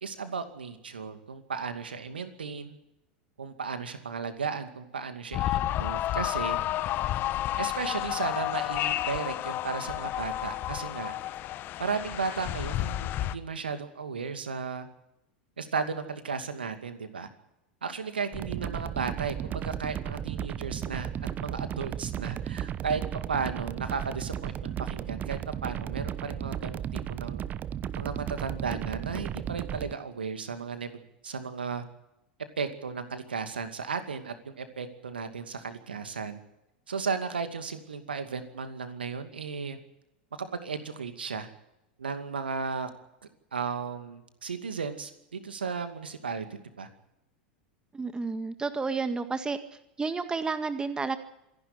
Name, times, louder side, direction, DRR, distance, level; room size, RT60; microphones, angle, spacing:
voice 1, 0.0-2.7 3.4-6.6 7.6-11.1 11.8-14.9 15.6-17.3 17.8-21.1 21.4-23.0 23.3-27.5 27.9-30.9 31.2-31.8 32.6-36.4 36.9-39.8 40.4-41.5 42.0-42.9 43.5-46.9, right 5 dB, 80° right, 9 dB, 2.4 m, -35 dB
sound 1, 5.3-13.4, left 14 dB, 40° left, 1.1 m, -31 dB
sound 2, 18.3-29.9, right 10 dB, 30° right, 1.0 m, -35 dB
voice 2, 47.9-49.6 50.0-51.2, right 4 dB, 15° right, 10 dB, 1.9 m, -31 dB
26.5 x 11.5 x 9.7 m, 0.87 s
figure-of-eight pair, 85°, 5 cm